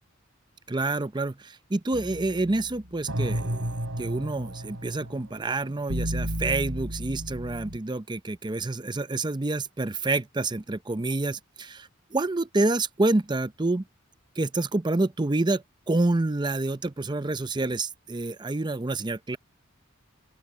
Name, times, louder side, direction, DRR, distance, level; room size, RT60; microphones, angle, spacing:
voice 1, 0.7-3.7 4.0-13.8 14.4-19.4, right 2 dB, 20° right, 0.6 m, -28 dB
sound 1, 1.9-7.8, right 1 dB, 75° right, 4.7 m, -33 dB
open air
head